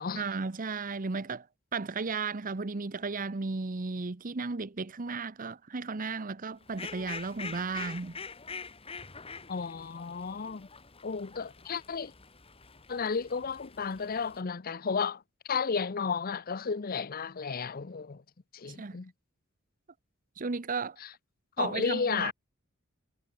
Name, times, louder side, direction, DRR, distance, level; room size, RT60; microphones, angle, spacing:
voice 1, 0.2-1.4 1.7-8.1 18.8-19.0 20.4-21.0 21.6-22.3, right 4 dB, 40° right, 0.8 m, -34 dB
Fowl, 6.6-14.4, left 5 dB, 30° left, 2.0 m, -45 dB
voice 2, 9.5-10.7 11.0-12.1 12.9-15.2 15.5-18.2 18.5-19.1 21.0-21.1 21.6-22.3, left 5 dB, 45° left, 0.7 m, -33 dB
head